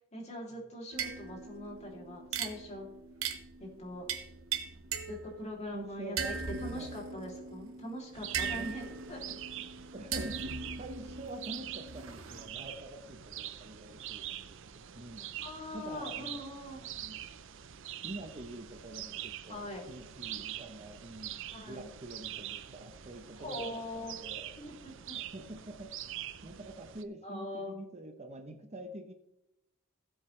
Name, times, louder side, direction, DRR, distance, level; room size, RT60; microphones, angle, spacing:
voice 1, 0.1-2.9 3.6-4.0 5.1-6.2 6.6-9.6 15.4-16.9 19.5-19.8 21.5-21.9 23.4-24.2 24.6-25.2 27.2-27.8, left 1 dB, 35° left, -1 dB, 3.0 m, -42 dB
sound 1, 0.9-5.7 6.2-12.7, right 6 dB, 85° right, 1.3 m, -40 dB
voice 2, 5.7-6.4 6.7-7.0 8.6-8.8 9.9-10.5 10.8-15.3 15.7-16.4 16.9-17.2 18.0-24.5 25.1-25.9 26.4-29.1, right 1 dB, 35° right, 6 dB, 0.9 m, -46 dB
sound 2, 8.1-27.0, right 11 dB, 65° right, 0.6 m, -44 dB
16.5 x 7.7 x 3.3 m, 0.89 s
head